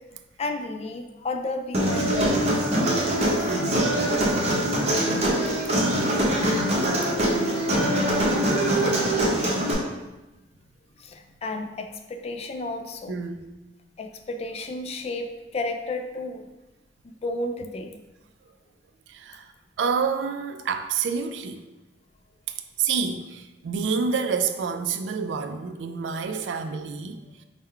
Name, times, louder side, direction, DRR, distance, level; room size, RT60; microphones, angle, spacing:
voice 1, 0.4-2.3 11.0-13.2 14.0-16.4 17.0-18.0, left 2 dB, 35° left, 0.3 m, -32 dB
Human voice, 1.7-9.7, right 1 dB, 35° right, 0.8 m, -23 dB
voice 2, 3.4-3.9 13.1-13.5 19.1-21.6 22.8-27.4, right 5 dB, 85° right, 0.3 m, -28 dB
3.7 x 2.2 x 4.3 m
head